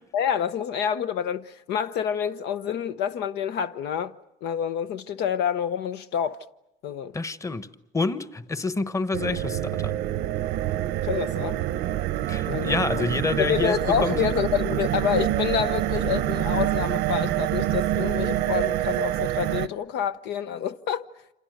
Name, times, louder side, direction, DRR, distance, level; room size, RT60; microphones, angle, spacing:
voice 1, 0.1-4.1 4.4-6.4 6.8-7.1 11.0-11.6 12.5-13.0 13.4-21.0, left 8 dB, 80° left, 0.9 m, -28 dB
voice 2, 7.1-10.0 12.3-14.1, left 3 dB, 20° left, 1.2 m, -28 dB
sound 1, 9.1-19.7, right 13 dB, 90° right, 0.9 m, -26 dB
28.0 x 27.0 x 6.6 m
cardioid pair, 110°, 17 cm